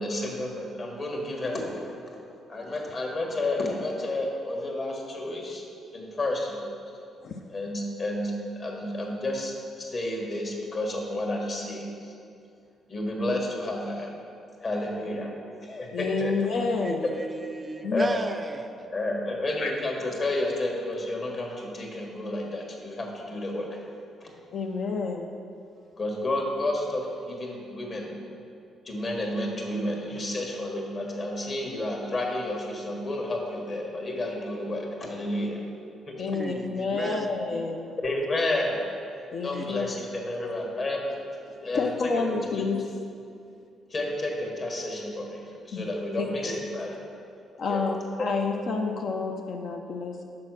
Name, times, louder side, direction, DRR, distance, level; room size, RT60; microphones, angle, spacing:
voice 1, 0.0-1.9 2.5-5.6 5.9-6.6 7.5-12.1 12.9-14.1 14.6-15.3 15.6-16.3 17.9-18.2 18.9-23.8 24.2-24.3 26.0-28.1 28.8-35.7 36.1-36.3 38.0-38.8 39.4-41.1 41.6-41.9 42.3-42.7 43.9-47.0 47.7-47.8, left 1 dB, 45° left, 0 dB, 1.4 m, -31 dB
voice 2, 15.9-17.1 17.8-18.1 19.6-19.7 24.5-25.3 36.2-38.0 39.3-39.9 41.7-42.8 45.7-45.9 46.2-46.6 47.6-50.2, left 4 dB, 65° left, 2 dB, 0.5 m, -29 dB
voice 3, 16.8-18.9 36.3-37.4 39.5-39.8, right 3 dB, 25° right, 7 dB, 0.4 m, -36 dB
6.1 x 4.8 x 6.1 m, 2.5 s
cardioid pair, 90°, 0 cm